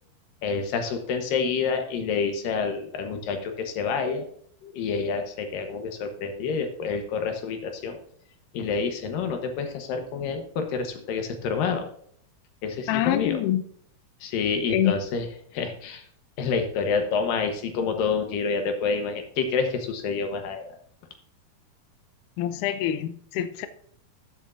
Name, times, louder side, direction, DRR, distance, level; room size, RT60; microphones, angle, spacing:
voice 1, 0.4-4.2 4.6-8.0 8.5-11.9 12.6-13.4 14.2-16.0 16.4-20.6, left 5 dB, 70° left, 2.6 m, -28 dB
voice 2, 12.9-13.6 14.7-14.9 22.4-23.7, left 11 dB, 90° left, 1.8 m, -25 dB
14.0 x 7.2 x 2.5 m
omnidirectional pair, 4.4 m